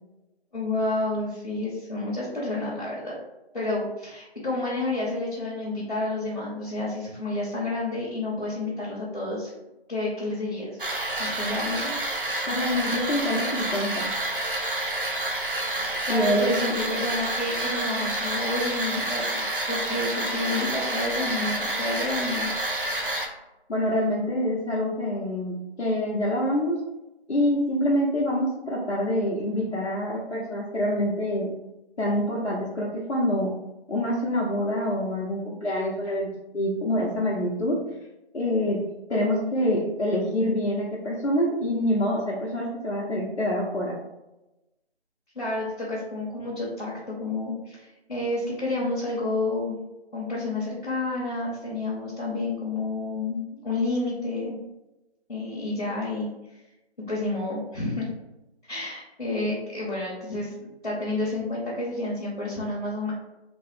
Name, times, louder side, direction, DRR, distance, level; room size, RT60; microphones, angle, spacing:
voice 1, 0.5-3.1 3.5-9.5 9.9-10.8 11.2-11.9 16.1-22.5 45.3-46.9 47.2-49.8 50.1-54.6 55.3-56.3 57.1-58.1 58.7-63.1, left 2 dB, 50° left, -7 dB, 0.9 m, -30 dB
sound 1, 10.8-23.3, right 1 dB, 55° right, 0.5 m, -29 dB
voice 2, 12.5-14.1 16.1-16.5 23.7-26.8 27.3-31.5 32.0-33.5 33.9-37.8 38.3-38.8 39.1-44.0, left 1 dB, 85° left, -5 dB, 0.8 m, -26 dB
3.0 x 2.1 x 3.2 m, 0.98 s
figure-of-eight pair, 180°, 32 cm